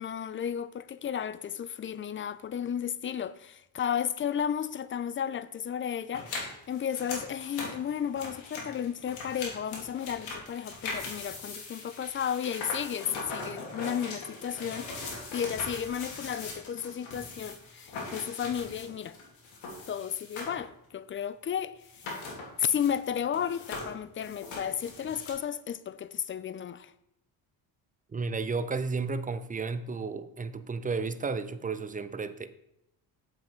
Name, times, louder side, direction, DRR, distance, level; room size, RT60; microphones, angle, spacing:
voice 1, 0.0-14.9 15.3-19.2 19.9-21.8 22.6-26.9, left 8 dB, 30° left, 0.4 m, -33 dB
sound 1, 6.1-20.6 20.9-21.0 21.8-23.1 23.3-25.3, left 3 dB, 75° left, 2.5 m, -40 dB
voice 2, 28.1-32.5, right 4 dB, 15° right, 0.5 m, -33 dB
7.4 x 5.8 x 4.4 m
supercardioid pair, 80°, 47 cm